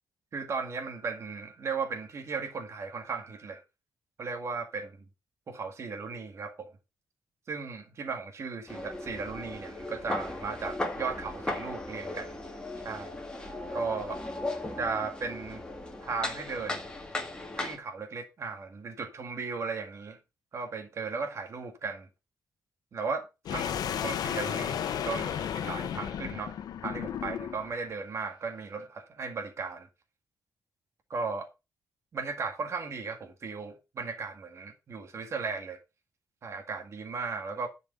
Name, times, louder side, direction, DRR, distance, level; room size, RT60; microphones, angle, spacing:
voice 1, 0.3-3.6 4.2-5.0 5.5-6.7 7.5-12.4 12.8-13.1 13.7-14.2 14.8-15.6 16.0-16.8 17.6-20.2 20.5-22.1 22.9-23.7 24.0-26.5 26.8-29.9 31.1-31.5 32.1-35.8 36.4-37.7, right 4 dB, 45° right, 2.0 m, -36 dB
sound 1, 8.7-17.8, left 2 dB, 15° left, 2.0 m, -37 dB
sound 2, 23.5-27.8, left 9 dB, 80° left, 0.9 m, -33 dB
10.5 x 5.2 x 5.3 m
wide cardioid pair, 145°, 7 cm